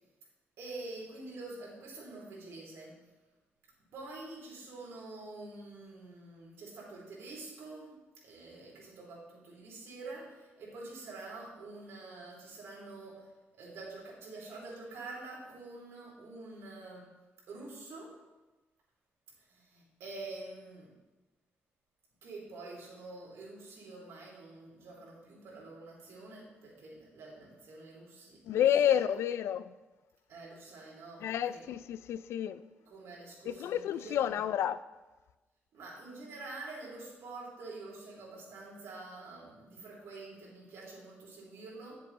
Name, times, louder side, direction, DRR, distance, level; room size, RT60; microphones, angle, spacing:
voice 1, 0.6-3.0 3.9-8.0 8.2-13.3 13.6-17.1 17.5-18.1 19.5-20.9 22.2-29.0 30.3-31.6 32.9-34.4 35.7-42.0, right 3 dB, 75° right, 3.1 m, -47 dB
voice 2, 28.5-29.7 31.2-32.6 33.5-34.8, left 10 dB, 80° left, 0.4 m, -30 dB
9.1 x 7.4 x 4.0 m
wide cardioid pair, 180°, 4 cm